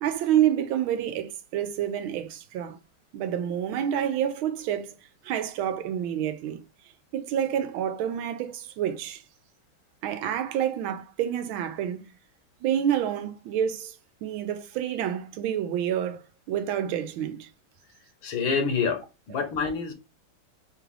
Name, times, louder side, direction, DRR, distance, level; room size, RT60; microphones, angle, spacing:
voice 1, 0.0-2.8 3.1-4.9 5.2-6.6 7.1-9.2 10.0-12.1 12.6-13.9 14.2-16.2 16.5-17.5, right 10 dB, 85° right, 1.4 m, -28 dB
voice 2, 18.2-19.9, left 5 dB, 75° left, 1.6 m, -27 dB
5.2 x 2.4 x 3.2 m
omnidirectional pair, 2.3 m